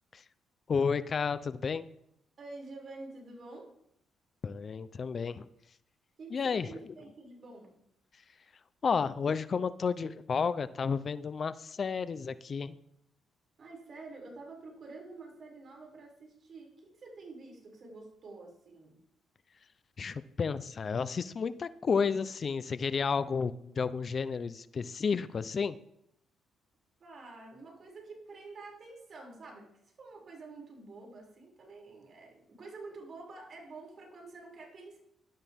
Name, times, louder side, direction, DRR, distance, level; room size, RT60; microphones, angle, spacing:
voice 1, 0.7-1.9 4.4-5.5 6.3-6.7 8.8-12.8 20.0-25.8, left 5 dB, 45° left, 14 dB, 0.6 m, -31 dB
voice 2, 2.4-3.7 6.2-7.8 13.6-19.0 27.0-29.6 30.0-35.0, right 3 dB, 50° right, -1 dB, 6.3 m, -48 dB
17.5 x 12.5 x 3.6 m, 0.76 s
cardioid pair, 90°, 0 cm